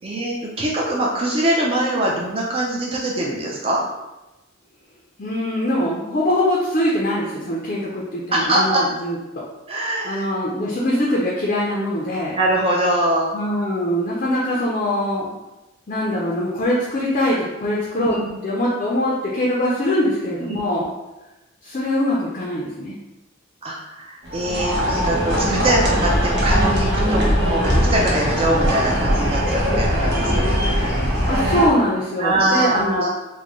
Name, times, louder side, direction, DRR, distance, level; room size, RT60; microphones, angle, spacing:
voice 1, 0.0-3.8 8.3-8.8 9.7-10.3 12.4-13.3 18.0-18.3 20.4-20.6 23.6-30.6 32.2-33.1, right 1 dB, 30° right, -3 dB, 0.4 m, -23 dB
voice 2, 5.2-9.2 10.0-12.3 13.3-15.3 15.9-18.2 18.4-20.8 21.6-23.0 24.8-25.3 31.3-33.0, left 1 dB, 40° left, -4 dB, 0.4 m, -22 dB
sound 1, 24.2-31.7, equal, 55° right, 0.9 m, -20 dB
3.6 x 2.1 x 3.0 m, 1.0 s
head